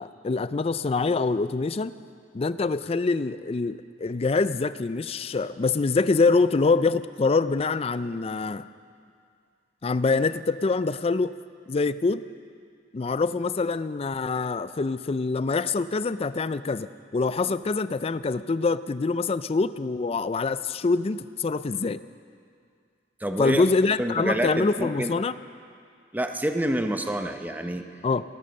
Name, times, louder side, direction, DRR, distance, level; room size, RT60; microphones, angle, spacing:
voice 1, 0.0-1.9 2.3-8.6 9.8-11.3 11.7-12.2 12.9-16.9 17.1-22.0 23.4-25.3 28.0-28.2, left 3 dB, 35° left, 15 dB, 0.4 m, -25 dB
voice 2, 23.2-23.6 24.0-25.1 26.1-27.8, right 1 dB, 10° right, 6 dB, 0.7 m, -27 dB
18.0 x 12.0 x 6.4 m, 2.2 s
head